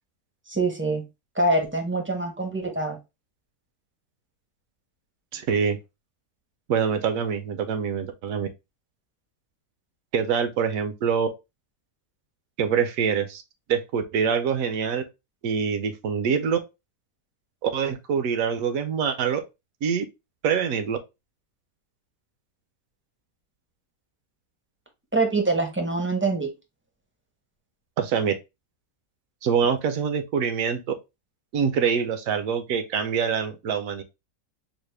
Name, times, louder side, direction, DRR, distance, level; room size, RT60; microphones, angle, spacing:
voice 1, 0.5-1.0 1.4-3.0 25.1-26.5, right 2 dB, 15° right, 0.5 m, -24 dB
voice 2, 5.3-5.8 6.7-8.5 10.1-11.3 12.6-13.4 13.7-15.0 15.4-16.6 17.6-19.4 19.8-20.0 20.4-21.0 28.0-28.3 29.4-30.8 31.5-34.0, right 6 dB, 70° right, 1.0 m, -25 dB
4.9 x 2.1 x 3.2 m
omnidirectional pair, 1.6 m